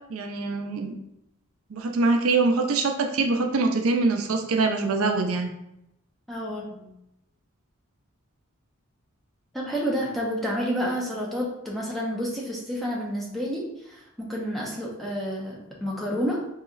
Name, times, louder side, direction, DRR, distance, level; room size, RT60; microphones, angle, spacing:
voice 1, 0.1-0.9 1.7-5.5, right 3 dB, 75° right, 4 dB, 0.5 m, -24 dB
voice 2, 6.3-6.9 9.5-16.4, equal, ahead, -4 dB, 0.6 m, -30 dB
3.9 x 2.8 x 2.4 m, 0.83 s
head